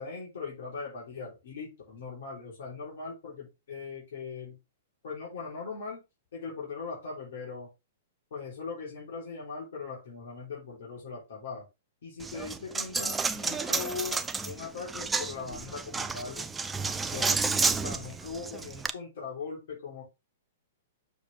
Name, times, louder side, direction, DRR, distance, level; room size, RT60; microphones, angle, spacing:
voice 1, 0.0-4.6 5.0-6.0 6.3-7.7 8.3-11.7 12.0-16.5 17.1-20.0, left 4 dB, 65° left, -5 dB, 3.8 m, -40 dB
Coin (dropping), 12.2-18.9, right 4 dB, 10° right, 0.5 m, -31 dB
7.0 x 4.7 x 3.5 m, 0.25 s
hypercardioid pair, 115°, 0 cm